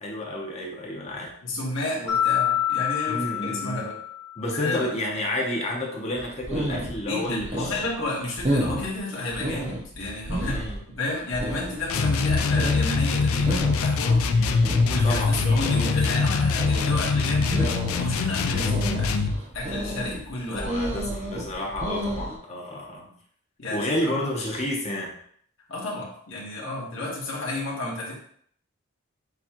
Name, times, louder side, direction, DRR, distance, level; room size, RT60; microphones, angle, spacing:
voice 1, 0.0-1.3 3.1-3.9 4.4-7.8 10.4-10.8 14.3-14.8 15.0-15.3 18.5-19.0 20.5-23.1 23.7-25.1, left 1 dB, 30° left, 0 dB, 0.8 m, -30 dB
voice 2, 1.4-4.0 4.5-4.9 7.1-10.6 11.0-14.2 14.9-17.7 18.0-21.0 23.6-24.1 25.7-28.1, left 2 dB, 60° left, -4 dB, 1.5 m, -31 dB
Mallet percussion, 2.1-4.5, left 11 dB, 65° right, 1.2 m, -26 dB
sound 1, 6.2-22.4, equal, 30° right, 0.6 m, -32 dB
sound 2, 11.9-19.4, left 4 dB, 80° left, 0.4 m, -23 dB
6.9 x 2.3 x 2.9 m, 0.62 s
head